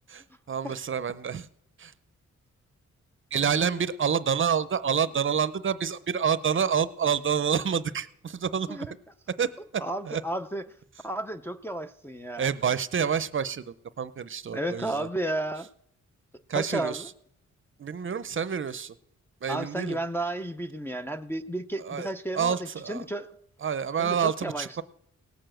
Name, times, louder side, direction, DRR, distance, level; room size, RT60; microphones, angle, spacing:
voice 1, 0.1-1.5 1.8-1.9 3.3-8.9 9.4-10.2 12.4-15.1 16.5-17.0 17.8-18.9 19.4-20.0 21.9-22.1 22.3-23.0 23.6-24.8, right 7 dB, 40° right, 15 dB, 0.6 m, -28 dB
voice 2, 9.8-10.7 11.0-12.5 14.5-15.7 16.5-17.1 19.5-23.4 24.0-24.8, right 1 dB, 10° left, 5 dB, 0.5 m, -33 dB
18.0 x 6.9 x 7.6 m, 0.71 s
wide cardioid pair, 160°, 31 cm